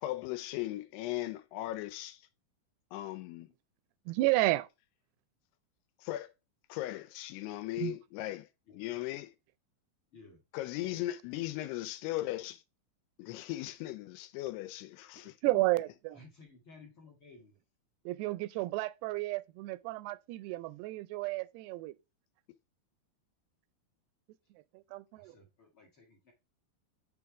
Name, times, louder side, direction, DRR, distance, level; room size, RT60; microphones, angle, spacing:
voice 1, 0.0-2.2 2.9-3.5 6.0-6.3 6.7-8.5 8.8-9.3 10.5-12.6 13.2-15.4, left 15 dB, 90° left, 2.7 m, -38 dB
voice 2, 4.1-4.7 7.8-8.0 15.4-16.2 18.1-21.9 24.7-25.4, right 19 dB, 85° right, 2.6 m, -32 dB
voice 3, 10.1-10.4 16.1-17.6 25.1-26.3, left 3 dB, 50° left, 1.6 m, -56 dB
7.0 x 3.5 x 4.7 m
omnidirectional pair, 4.6 m